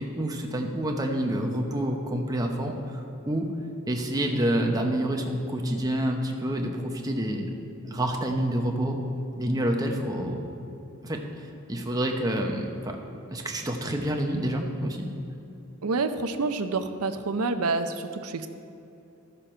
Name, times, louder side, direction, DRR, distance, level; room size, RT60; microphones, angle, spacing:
voice 1, 0.0-3.5 3.9-7.5 7.9-9.0 9.4-10.4 11.0-11.2 11.7-13.0 13.3-15.1, right 1 dB, 15° right, 2 dB, 0.9 m, -28 dB
voice 2, 15.8-18.5, right 3 dB, 80° right, 8 dB, 0.6 m, -28 dB
14.0 x 6.8 x 4.4 m, 2.8 s
head